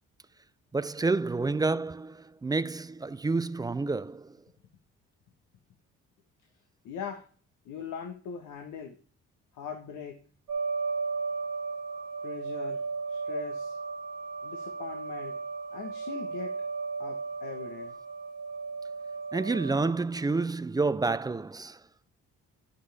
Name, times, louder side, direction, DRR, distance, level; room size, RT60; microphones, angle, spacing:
voice 1, 0.7-4.4 19.3-21.8, right 3 dB, 15° right, 0.3 m, -29 dB
voice 2, 6.8-7.3 7.6-9.0 9.5-10.2 12.2-13.8 14.4-15.4 15.7-16.6 17.0-18.0, left 7 dB, 85° left, 1.3 m, -41 dB
sound 1, 10.5-19.9, right 4 dB, 75° right, 1.4 m, -35 dB
12.0 x 5.6 x 3.4 m
cardioid pair, 90°, 30 cm